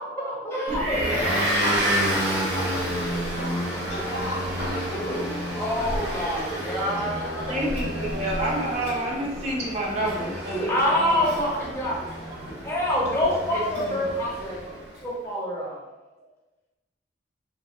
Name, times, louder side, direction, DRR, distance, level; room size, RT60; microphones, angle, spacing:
voice 1, 0.0-2.8 4.9-7.6 10.4-15.8, left 1 dB, 15° left, -6 dB, 0.6 m, -28 dB
voice 2, 0.7-1.2 2.5-2.6 7.5-11.2 13.8-14.0, right 1 dB, 35° right, -2 dB, 0.4 m, -29 dB
Motor vehicle (road) / Engine, 0.7-14.9, equal, 70° right, 0.9 m, -30 dB
voice 3, 2.6-4.9 7.0-7.1 7.7-8.1, left 1 dB, 65° left, -3 dB, 0.6 m, -38 dB
2.2 x 2.0 x 2.9 m, 1.1 s
head